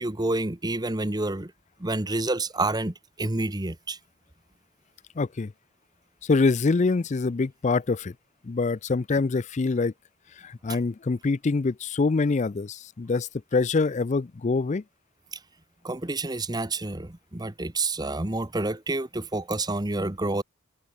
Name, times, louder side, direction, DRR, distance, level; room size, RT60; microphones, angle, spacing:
voice 1, 0.0-1.5 1.8-4.0 15.3-15.4 15.8-20.4, right 2 dB, 20° right, 1.1 m, -28 dB
voice 2, 5.2-5.5 6.2-8.1 8.4-9.9 10.4-14.8, left 3 dB, 35° left, 0.4 m, -25 dB
head